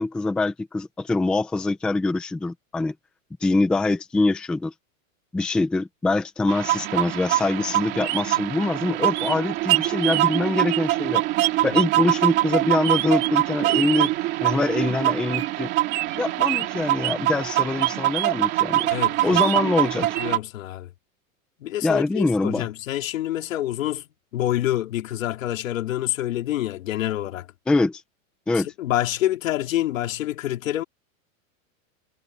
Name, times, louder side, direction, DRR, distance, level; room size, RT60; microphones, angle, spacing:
voice 1, 0.0-2.9 3.4-4.7 5.3-11.2 11.6-14.1 14.4-15.7 16.2-18.8 19.2-20.1 21.8-22.7 27.7-28.0 28.5-28.7, left 3 dB, ahead, 0.6 m, -24 dB
sound 1, 6.5-20.4, right 16 dB, 25° right, 2.7 m, -23 dB
voice 2, 18.9-19.7 20.0-20.9 21.6-27.5 28.5-30.8, left 13 dB, 75° left, 3.6 m, -27 dB
supercardioid pair, 180°, 40 cm